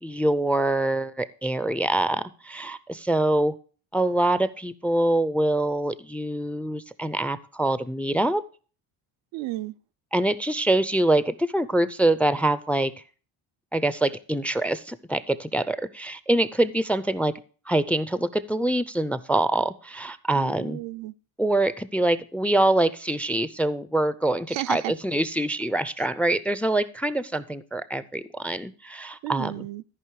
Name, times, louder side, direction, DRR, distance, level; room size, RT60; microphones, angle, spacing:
voice 1, 0.0-3.6 3.9-8.4 10.1-12.9 13.7-17.3 17.7-20.8 21.4-29.5, right 1 dB, 5° left, 0.4 m, -25 dB
voice 2, 9.3-9.8 20.4-21.2 24.5-24.9 29.2-29.8, right 18 dB, 75° right, 0.6 m, -33 dB
13.5 x 5.4 x 4.7 m
cardioid pair, 100°, 45 cm